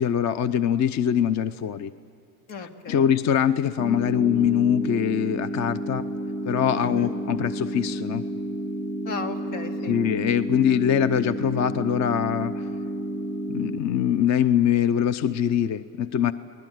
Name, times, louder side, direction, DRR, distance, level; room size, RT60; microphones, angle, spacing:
voice 1, 0.0-1.9 2.9-6.1 6.5-8.2 9.9-12.6 13.5-16.3, left 9 dB, 35° left, 14 dB, 0.6 m, -23 dB
voice 2, 2.5-3.0 6.8-7.1 9.0-10.0, left 5 dB, 70° left, 5 dB, 2.7 m, -35 dB
sound 1, 3.8-13.8, right 1 dB, ahead, 0.8 m, -31 dB
30.0 x 20.0 x 9.2 m, 2.3 s
supercardioid pair, 110°, 49 cm